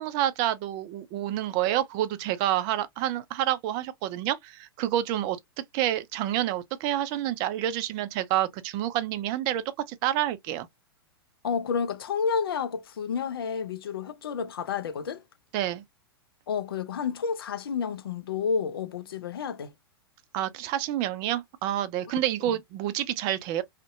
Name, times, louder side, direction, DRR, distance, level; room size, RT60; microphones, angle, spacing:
voice 1, 0.0-5.4 5.7-10.7 15.5-15.8 20.3-23.6, right 12 dB, 35° right, 0.4 m, -28 dB
voice 2, 11.4-15.2 16.5-19.7, left 6 dB, 65° left, 0.4 m, -30 dB
2.6 x 2.1 x 2.3 m
figure-of-eight pair, 100°, 13 cm